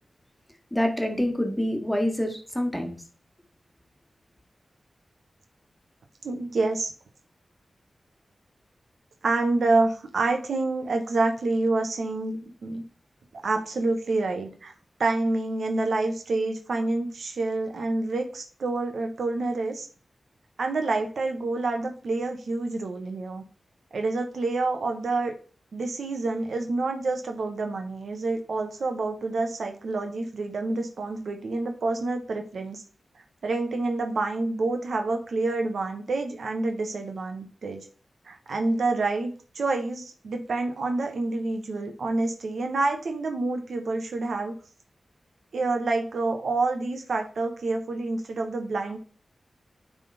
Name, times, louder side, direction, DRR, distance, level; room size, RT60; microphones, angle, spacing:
voice 1, 0.7-2.9, left 1 dB, 5° left, 4 dB, 1.5 m, -26 dB
voice 2, 6.2-6.9 9.2-12.8 13.3-14.7 15.0-19.9 20.6-23.4 23.9-25.3 25.7-32.8 33.4-37.9 38.2-44.6 45.5-49.0, right 3 dB, 80° right, 5 dB, 1.1 m, -28 dB
9.0 x 3.7 x 4.2 m, 0.41 s
cardioid pair, 65°, 0 cm